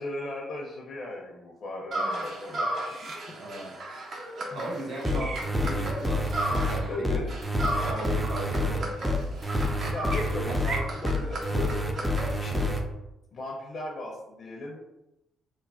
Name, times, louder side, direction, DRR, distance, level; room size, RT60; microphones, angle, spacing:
voice 1, 0.0-2.7 3.3-3.4 4.4-4.7 5.1-5.3 6.9-7.7 9.9-11.7 12.4-12.7 13.3-14.8, left 2 dB, 50° left, -2 dB, 0.5 m, -37 dB
sound 1, 1.9-7.0 7.3-12.8, right 1 dB, 55° right, 0.5 m, -34 dB
voice 2, 2.0-2.3 3.3-3.7 4.5-7.2 7.8-9.4, right 2 dB, 80° right, -4 dB, 0.9 m, -38 dB
sound 2, 5.0-12.8, left 1 dB, 5° right, 0.4 m, -28 dB
3.2 x 2.1 x 2.4 m, 0.93 s
cardioid pair, 90°, 0 cm